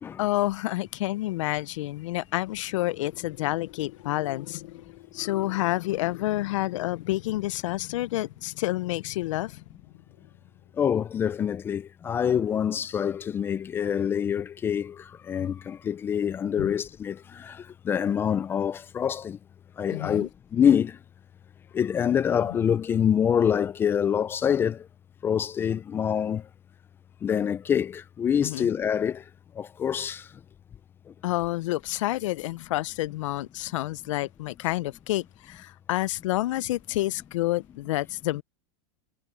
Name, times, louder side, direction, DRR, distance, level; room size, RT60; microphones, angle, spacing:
voice 1, 0.2-9.6 16.6-16.7 19.9-20.3 28.4-28.7 31.2-38.4, left 17 dB, 80° left, 0.5 m, -29 dB
voice 2, 10.8-19.4 19.8-21.0 21.7-24.9 25.2-26.5 27.2-29.2 29.6-30.3, left 8 dB, 15° left, 0.4 m, -26 dB
supercardioid pair, 165°, 16 cm